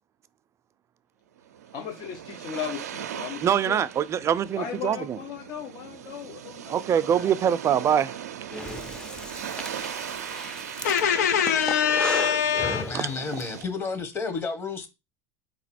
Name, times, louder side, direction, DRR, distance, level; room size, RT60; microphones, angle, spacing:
sound 1, 1.4-13.6, right 9 dB, 90° right, 0.4 m, -39 dB
voice 1, 1.7-3.8 4.6-7.3, left 8 dB, 55° left, 1.0 m, -37 dB
voice 2, 3.4-5.2 6.7-8.2 12.9-13.3, right 9 dB, 35° right, 0.5 m, -24 dB
Breathing, 8.5-13.5, left 1 dB, 10° left, 0.6 m, -35 dB
voice 3, 10.8-13.0, left 7 dB, 85° left, 0.8 m, -23 dB
voice 4, 12.9-14.9, left 4 dB, 25° left, 1.2 m, -31 dB
3.9 x 3.0 x 4.3 m
hypercardioid pair, 95°, 8 cm